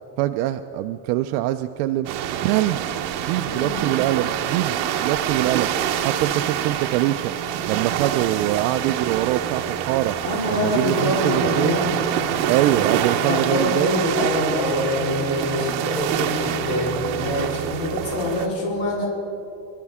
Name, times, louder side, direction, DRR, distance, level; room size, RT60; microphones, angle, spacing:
voice 1, 0.2-2.1 2.4-2.8 3.3-5.7 6.0-7.3 7.7-10.1 10.5-11.8 12.5-14.0, right 14 dB, 80° right, 8 dB, 0.6 m, -23 dB
sound 1, 2.0-18.5, right 10 dB, 65° right, 1.1 m, -26 dB
voice 2, 3.4-3.9 10.2-12.0 12.6-12.9 13.3-19.1, left 1 dB, 55° left, -5 dB, 4.1 m, -25 dB
24.0 x 12.5 x 3.6 m, 2.8 s
cardioid pair, 150°, 50 cm